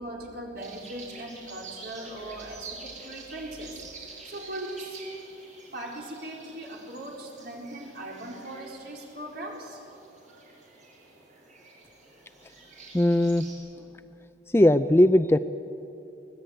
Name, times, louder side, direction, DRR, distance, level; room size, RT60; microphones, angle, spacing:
voice 1, 0.0-5.0 5.7-9.8 10.3-10.4, right 1 dB, 60° right, -1 dB, 4.4 m, -39 dB
sound 1, 0.6-13.5, right 4 dB, 45° right, 6.5 m, -48 dB
voice 2, 12.9-13.5 14.5-15.4, left 1 dB, 15° left, 11 dB, 0.5 m, -19 dB
24.5 x 18.5 x 9.0 m, 2.8 s
head